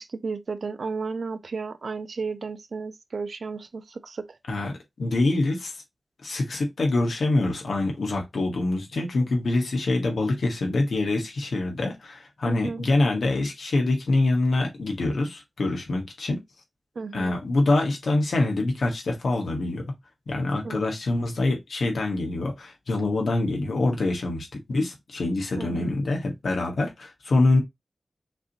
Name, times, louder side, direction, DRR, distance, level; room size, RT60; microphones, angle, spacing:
voice 1, 0.0-4.2 12.4-12.9 17.0-17.3 20.6-20.8 25.6-25.9, right 4 dB, 75° right, 0.5 m, -33 dB
voice 2, 4.5-5.7 6.2-16.4 17.1-19.8 20.3-27.6, left 2 dB, 90° left, 1.3 m, -25 dB
6.0 x 2.7 x 2.8 m
wide cardioid pair, 60°, 0 cm